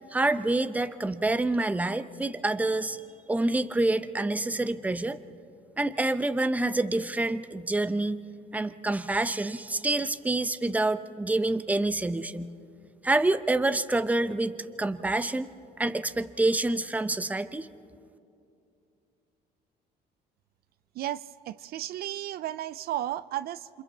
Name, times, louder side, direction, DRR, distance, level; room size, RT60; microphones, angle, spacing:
voice 1, 0.1-3.0 3.3-5.2 5.8-8.2 8.5-12.5 13.0-15.5 15.8-17.7, right 2 dB, 10° right, 11 dB, 0.7 m, -27 dB
voice 2, 21.0-23.8, right 13 dB, 65° right, 16 dB, 0.5 m, -34 dB
28.0 x 26.5 x 4.1 m, 2.6 s
cardioid pair, 110°, 17 cm